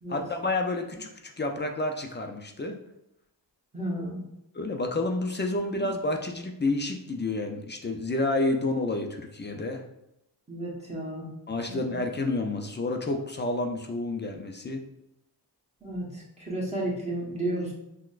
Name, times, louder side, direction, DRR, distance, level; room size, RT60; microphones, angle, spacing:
voice 1, 0.1-2.8 4.5-9.8 11.5-14.8, left 2 dB, 30° left, 3 dB, 0.3 m, -29 dB
voice 2, 3.7-4.3 10.5-11.3 11.6-12.0 15.8-17.7, right 1 dB, 15° right, -6 dB, 1.0 m, -33 dB
5.9 x 2.2 x 2.4 m, 0.85 s
wide cardioid pair, 130°, 41 cm